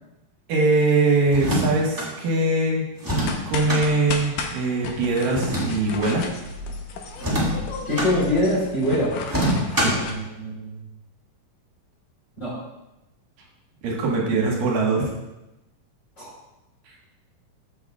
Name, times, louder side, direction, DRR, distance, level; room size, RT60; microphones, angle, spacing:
voice 1, 0.5-2.8 3.4-6.3 9.8-10.0 13.8-15.1, right 3 dB, 80° right, -2 dB, 3.1 m, -22 dB
sound 1, 1.3-2.1 3.0-3.8 5.3-6.2 7.2-8.1 9.3-10.1, right 1 dB, 10° right, 1.3 m, -25 dB
sound 2, 3.2-10.1, left 4 dB, 80° left, 2.4 m, -33 dB
voice 2, 7.9-9.1 10.0-10.7 12.4-12.5 16.2-16.3, left 1 dB, 20° left, -6 dB, 3.4 m, -24 dB
14.5 x 6.2 x 2.4 m, 0.96 s
omnidirectional pair, 3.9 m